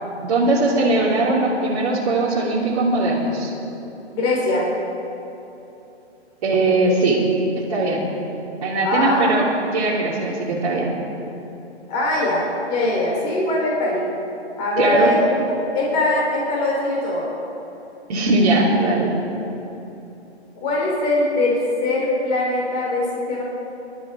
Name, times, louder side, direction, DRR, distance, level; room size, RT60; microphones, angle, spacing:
voice 1, 0.2-3.5 6.4-7.2 7.6-8.1 8.6-9.4 9.7-10.9 14.8-15.1 18.1-19.1, right 2 dB, 35° right, -8 dB, 2.8 m, -20 dB
voice 2, 4.1-4.7 8.8-9.5 11.9-14.0 14.6-15.4 15.7-17.3 20.6-23.4, left 2 dB, 20° left, -3 dB, 3.5 m, -21 dB
23.5 x 12.5 x 4.8 m, 2.9 s
hypercardioid pair, 150°, 34 cm